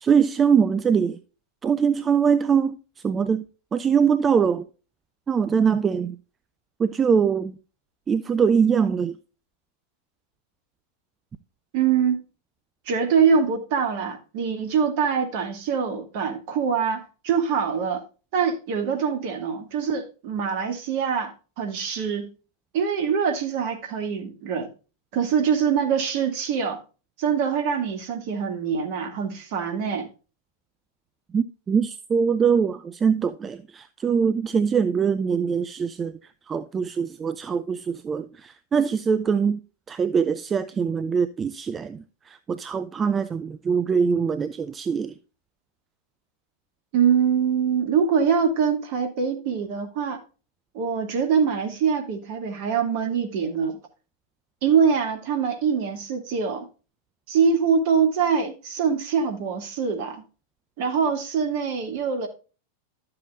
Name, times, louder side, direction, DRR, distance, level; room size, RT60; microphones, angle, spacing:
voice 1, 0.0-1.2 1.6-2.8 3.0-3.4 3.7-4.6 5.3-6.2 6.8-7.6 8.1-9.1 31.3-36.2 36.5-39.6 39.9-45.1, right 6 dB, 20° right, 0.5 m, -22 dB
voice 2, 11.7-12.2 12.9-18.0 18.3-22.3 22.7-24.7 25.1-26.8 27.2-30.1 46.9-50.2 50.7-53.8 54.6-56.7 57.3-60.2 60.8-62.3, right 6 dB, 50° right, 2.3 m, -24 dB
12.0 x 7.7 x 2.4 m
figure-of-eight pair, 90°, 0 cm